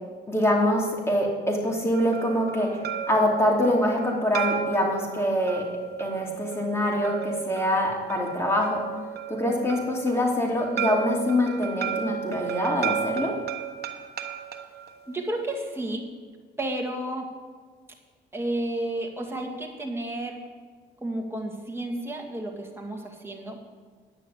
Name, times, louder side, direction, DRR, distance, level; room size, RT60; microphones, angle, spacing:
voice 1, 0.3-2.8 3.1-5.7 6.0-8.8 9.3-13.4, left 1 dB, 15° left, -1 dB, 2.8 m, -24 dB
sound 1, 1.9-15.8, right 9 dB, 55° right, 1.2 m, -34 dB
voice 2, 15.1-16.0 16.6-17.3 18.3-20.4 21.0-23.7, right 1 dB, 10° right, 0 dB, 2.1 m, -32 dB
10.0 x 6.5 x 8.1 m, 1.5 s
cardioid pair, 90°, 20 cm